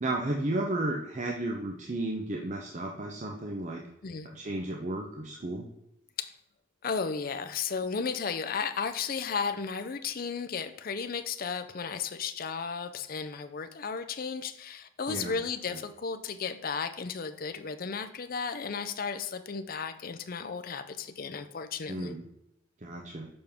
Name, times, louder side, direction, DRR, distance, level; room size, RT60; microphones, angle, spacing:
voice 1, 0.0-3.8 4.3-5.7 15.1-15.3 15.7-15.8 21.9-22.2 22.8-23.3, right 2 dB, 35° right, 1 dB, 0.6 m, -33 dB
voice 2, 6.8-22.2, left 5 dB, 45° left, 10 dB, 0.5 m, -34 dB
6.8 x 5.2 x 3.5 m, 0.85 s
head